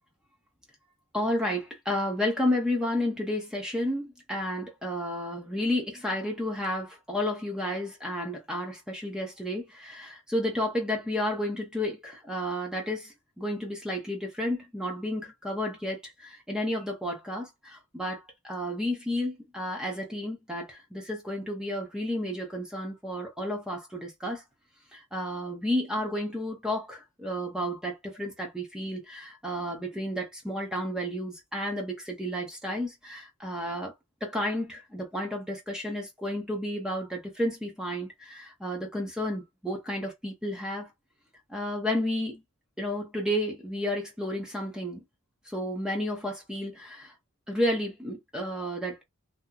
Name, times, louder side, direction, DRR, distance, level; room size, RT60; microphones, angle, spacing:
voice 1, 1.1-24.4 24.9-33.9 34.2-40.9 41.5-42.4 42.8-45.0 45.5-47.1 47.5-49.0, left 1 dB, 5° right, 0.8 m, -32 dB
2.8 x 2.2 x 3.7 m
head